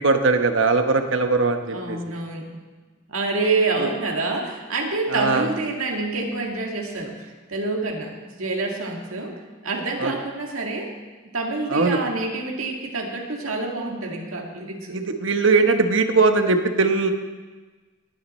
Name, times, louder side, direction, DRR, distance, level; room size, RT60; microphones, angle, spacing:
voice 1, 0.0-2.0 3.8-3.9 5.1-5.5 10.0-10.1 11.7-12.0 14.9-17.1, right 3 dB, 60° right, 6 dB, 1.0 m, -20 dB
voice 2, 1.7-2.5 3.1-9.4 9.6-10.9 11.3-15.0, right 3 dB, 80° right, 1 dB, 1.9 m, -27 dB
19.5 x 9.4 x 4.3 m, 1.3 s
head